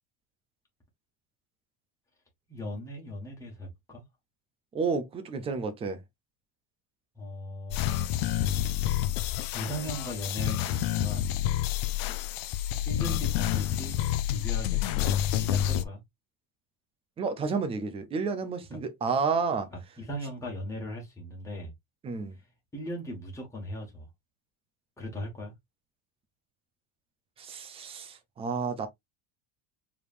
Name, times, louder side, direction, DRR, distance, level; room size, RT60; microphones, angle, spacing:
voice 1, 2.5-4.0 7.1-8.0 9.5-11.3 12.8-14.0 14.3-16.0 18.7-18.8 20.0-21.7 22.7-24.1 25.0-25.5, equal, 5° left, 1.5 m, -38 dB
voice 2, 4.7-6.0 17.2-19.7 22.0-22.4 27.4-28.9, right 5 dB, 15° right, 0.3 m, -30 dB
sound 1, 7.7-15.8, left 12 dB, 50° left, 0.5 m, -28 dB
4.9 x 3.4 x 2.5 m
cardioid pair, 165°, 46 cm